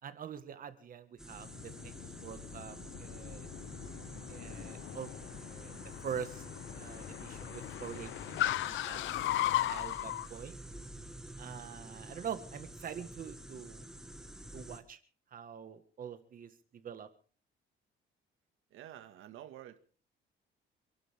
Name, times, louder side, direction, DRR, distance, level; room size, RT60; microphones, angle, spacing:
voice 1, 0.0-3.5 4.3-5.1 5.4-5.8 6.0-6.4 6.7-9.0 9.3-10.6 11.4-13.9 14.5-15.0 15.3-17.1, right 8 dB, 45° right, 1.7 m, -45 dB
sound 1, 1.2-14.8, right 1 dB, 5° right, 1.6 m, -49 dB
Car, 1.3-10.3, left 14 dB, 70° left, 0.7 m, -38 dB
sound 2, 10.7-12.8, left 4 dB, 50° left, 7.5 m, -65 dB
voice 2, 18.7-19.8, right 12 dB, 80° right, 2.0 m, -49 dB
28.5 x 11.5 x 3.7 m
cardioid pair, 155°, 20 cm